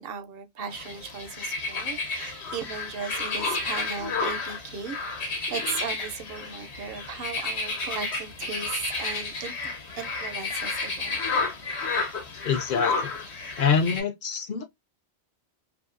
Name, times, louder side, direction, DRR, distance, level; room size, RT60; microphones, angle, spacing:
voice 1, 0.0-11.2, right 6 dB, 65° right, 0.7 m, -37 dB
sound 1, 0.7-14.0, left 3 dB, 85° left, 1.2 m, -31 dB
voice 2, 12.4-13.2 13.6-14.6, left 6 dB, 60° left, 0.6 m, -25 dB
2.7 x 2.5 x 2.4 m
omnidirectional pair, 1.1 m